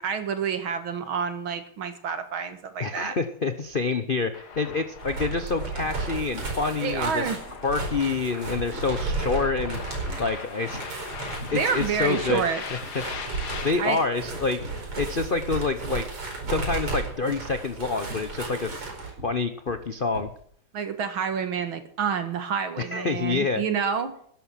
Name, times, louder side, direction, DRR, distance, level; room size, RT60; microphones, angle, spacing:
voice 1, 0.0-3.2 6.8-7.4 11.5-12.6 13.8-14.0 20.7-24.2, right 6 dB, 65° right, 9 dB, 2.5 m, -28 dB
voice 2, 2.8-7.2 7.6-9.8 10.2-10.8 11.5-12.4 12.9-13.0 13.6-14.6 15.0-16.1 16.5-18.9 19.2-20.3 22.8-23.6, left 4 dB, 75° left, 10 dB, 0.4 m, -27 dB
sound 1, 3.6-3.8 4.1-4.9 5.2-6.1 6.3-6.7 7.0-9.8 10.0-11.0 11.4-11.8 12.2-12.3 12.8-13.3 13.6-15.0 15.5-15.9 16.4-16.9 17.2-20.5, right 1 dB, 30° right, 5.5 m, -44 dB
sound 2, 4.3-13.7, left 6 dB, 50° left, 2.0 m, -40 dB
sound 3, 4.9-19.1, right 3 dB, 85° right, 6.1 m, -34 dB
13.0 x 10.5 x 7.5 m, 0.63 s
omnidirectional pair, 2.4 m